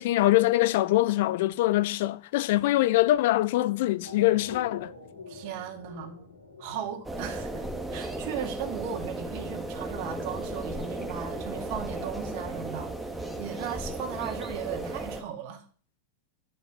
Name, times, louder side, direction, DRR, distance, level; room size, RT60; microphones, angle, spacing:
voice 1, 0.0-4.9, left 16 dB, 50° left, 0.7 m, -23 dB
sound 1, 4.0-9.5, left 3 dB, 75° left, 5.7 m, -46 dB
voice 2, 5.3-6.3 6.6-7.6 7.9-15.6, right 8 dB, 45° right, 2.2 m, -37 dB
sound 2, 7.0-15.2, right 1 dB, ahead, 1.6 m, -35 dB
11.0 x 7.2 x 5.7 m
figure-of-eight pair, 90°, 0 cm